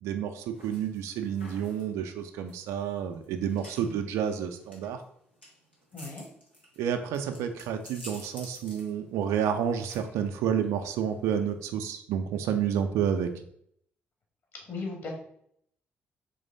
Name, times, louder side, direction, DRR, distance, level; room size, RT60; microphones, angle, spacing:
voice 1, 0.0-5.0 6.8-13.3, right 8 dB, 60° right, 7 dB, 0.4 m, -30 dB
sound 1, 0.5-11.8, equal, 90° left, 0.7 m, -52 dB
voice 2, 5.9-6.3 14.7-15.1, left 3 dB, 50° left, 0 dB, 1.7 m, -37 dB
3.9 x 3.3 x 3.9 m, 0.70 s
figure-of-eight pair, 40°, 6 cm